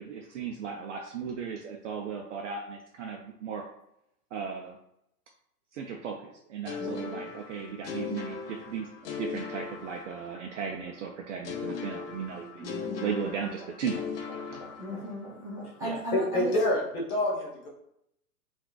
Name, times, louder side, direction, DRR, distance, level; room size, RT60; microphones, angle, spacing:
voice 1, 0.0-3.7 4.3-4.8 5.7-8.9 9.2-12.7 13.0-14.0 14.3-14.7 15.8-16.0, right 6 dB, 50° right, 2 dB, 0.4 m, -36 dB
sound 1, 6.7-10.6 11.4-15.3, left 6 dB, 50° left, 0.6 m, -38 dB
voice 2, 6.8-7.2 12.6-13.3 14.6-16.5, right 1 dB, 5° right, -11 dB, 0.8 m, -37 dB
voice 3, 16.1-17.7, left 1 dB, 65° left, -2 dB, 1.3 m, -27 dB
3.6 x 2.4 x 2.3 m, 0.79 s
hypercardioid pair, 115°, 48 cm